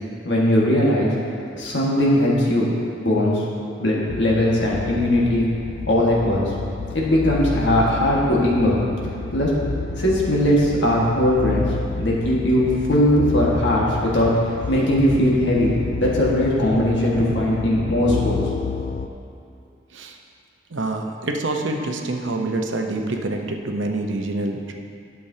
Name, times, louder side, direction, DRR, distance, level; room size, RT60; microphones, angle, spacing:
voice 1, 0.2-1.1 1.5-2.7 3.0-3.4 3.8-5.5 5.9-6.5 6.9-8.7 9.3-9.5 10.0-11.6 12.0-14.3 14.7-15.7 16.0-18.4, left 1 dB, 75° left, -5 dB, 1.6 m, -19 dB
sound 1, 4.1-19.1, left 4 dB, 55° left, 0.3 m, -30 dB
voice 2, 20.7-24.7, right 2 dB, 85° right, 3 dB, 0.7 m, -26 dB
12.0 x 6.9 x 2.8 m, 2.5 s
head